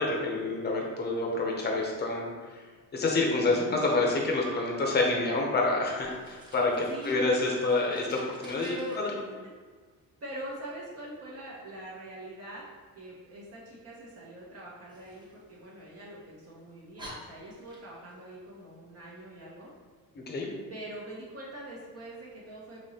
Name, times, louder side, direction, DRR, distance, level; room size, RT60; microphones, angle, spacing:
voice 1, 0.0-2.6 2.9-9.1 20.3-20.5, left 2 dB, 30° left, -1 dB, 0.8 m, -28 dB
Fire, 6.0-9.0 14.9-16.1 16.6-16.7 17.0-18.2, equal, 15° right, 0.8 m, -50 dB
voice 2, 6.9-7.3 8.6-9.0 10.2-12.7 12.9-19.7 20.7-22.8, right 1 dB, 45° right, -5 dB, 0.9 m, -43 dB
5.3 x 2.9 x 2.8 m, 1.5 s
cardioid pair, 145°, 35 cm